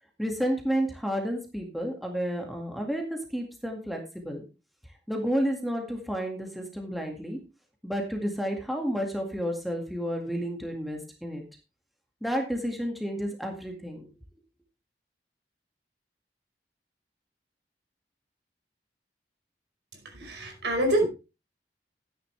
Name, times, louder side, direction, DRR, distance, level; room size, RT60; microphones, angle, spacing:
voice 1, 0.2-4.4 5.1-7.4 7.8-11.4 12.2-14.1, equal, ahead, 1 dB, 2.0 m, -31 dB
voice 2, 20.0-21.1, right 1 dB, 80° right, 2 dB, 5.0 m, -26 dB
13.5 x 9.9 x 3.3 m, 0.30 s
head